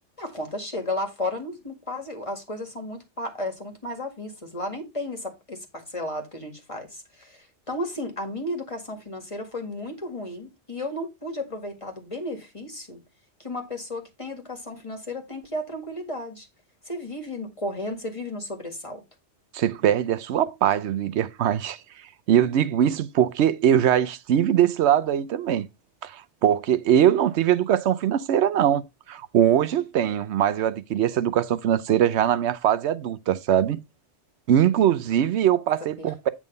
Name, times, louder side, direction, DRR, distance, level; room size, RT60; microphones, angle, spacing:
voice 1, 0.2-13.0 13.4-16.5 16.9-19.0 36.0-36.1, left 1 dB, 25° left, 1.9 m, -33 dB
voice 2, 19.5-21.8 22.3-25.7 26.0-28.8 29.1-33.8 34.5-36.3, right 10 dB, 70° right, 0.9 m, -21 dB
8.7 x 3.6 x 5.2 m
omnidirectional pair, 1.2 m